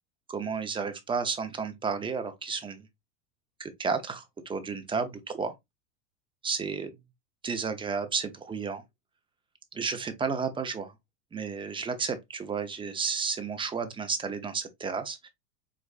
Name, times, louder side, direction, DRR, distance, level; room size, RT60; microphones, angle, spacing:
voice 1, 0.3-2.9 3.6-5.5 6.4-7.0 7.4-8.8 9.7-10.9 11.3-15.3, right 5 dB, 15° right, 0.6 m, -32 dB
4.3 x 2.5 x 2.4 m
hypercardioid pair, 110°, 37 cm